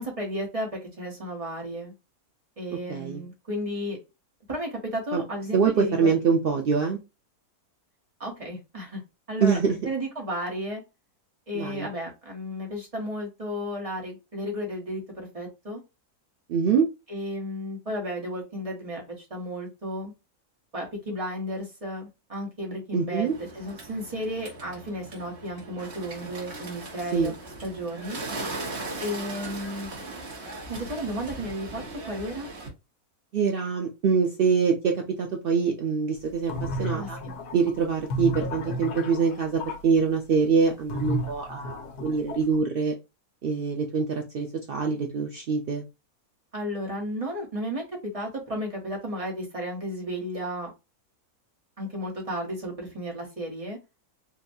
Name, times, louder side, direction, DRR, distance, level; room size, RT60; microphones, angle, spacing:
voice 1, 0.0-1.9 2.6-4.0 4.5-6.1 8.2-9.0 9.3-10.8 11.5-15.8 17.1-20.1 20.7-27.3 27.6-28.2 29.0-29.9 30.7-32.5 36.9-37.4 46.5-50.7 51.8-53.8, equal, 25° right, -1 dB, 1.1 m, -33 dB
voice 2, 2.9-3.2 5.1-5.2 5.5-7.0 9.4-9.8 11.5-11.9 16.5-16.9 22.9-23.4 27.1-27.3 33.3-37.2 37.5-42.9 43.4-45.8, right 5 dB, 90° right, 2 dB, 0.5 m, -24 dB
Bird, 23.3-32.7, right 2 dB, 45° right, 1.4 m, -38 dB
sound 1, 36.3-39.8 40.9-42.6, equal, 85° left, 1.3 m, -33 dB
3.8 x 2.3 x 2.6 m, 0.25 s
omnidirectional pair, 1.6 m